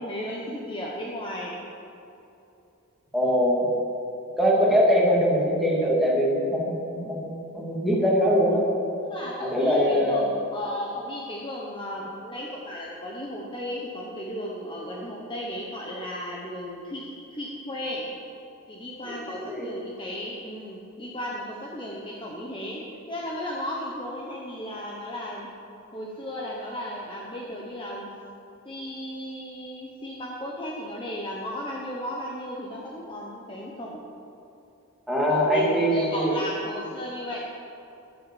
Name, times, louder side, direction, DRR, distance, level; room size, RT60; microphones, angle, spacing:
voice 1, 0.0-1.6 4.4-4.7 9.0-18.1 18.7-22.8 23.1-25.5 25.9-28.1 28.6-34.1 35.3-37.4, equal, 25° left, -3 dB, 1.1 m, -35 dB
voice 2, 3.1-3.7 4.4-8.6 9.4-10.2 19.0-19.1 19.4-19.7 35.1-36.3, equal, ahead, -5 dB, 2.4 m, -22 dB
11.0 x 9.4 x 7.2 m, 2.9 s
head